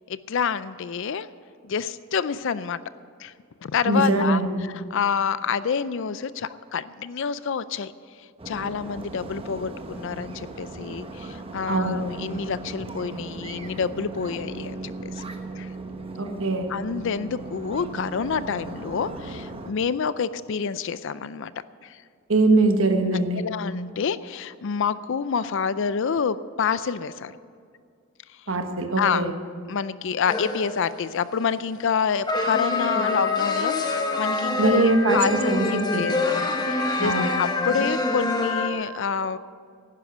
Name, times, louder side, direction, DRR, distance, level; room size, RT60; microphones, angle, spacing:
voice 1, 0.1-1.3 1.6-2.8 3.2-3.3 3.6-7.9 8.2-15.3 15.6-15.7 16.7-21.5 21.8-22.0 23.1-27.4 29.0-29.2 29.7-39.4, left 6 dB, 60° left, 15 dB, 0.4 m, -28 dB
voice 2, 3.8-4.6 11.7-12.0 16.2-16.7 22.3-23.4 28.5-29.3 34.6-36.1 37.0-37.3, right 2 dB, 65° right, 5 dB, 1.3 m, -22 dB
sound 1, 8.4-19.7, right 3 dB, 25° right, 0.9 m, -37 dB
sound 2, 30.3-31.1 32.3-38.7, left 3 dB, 20° left, 1.0 m, -25 dB
11.5 x 10.0 x 9.3 m, 2.2 s
head